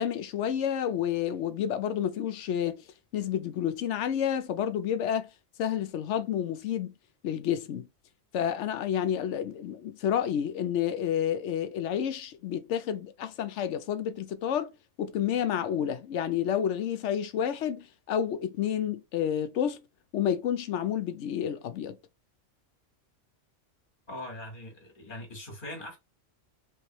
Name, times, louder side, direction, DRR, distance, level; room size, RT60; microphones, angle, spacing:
voice 1, 0.0-2.8 3.1-5.3 5.6-6.9 7.2-7.9 8.3-14.7 15.0-19.8 20.1-22.0, left 9 dB, 80° left, 0.9 m, -30 dB
voice 2, 24.1-26.0, left 1 dB, 45° left, 1.7 m, -41 dB
3.3 x 3.2 x 2.9 m
omnidirectional pair, 1.2 m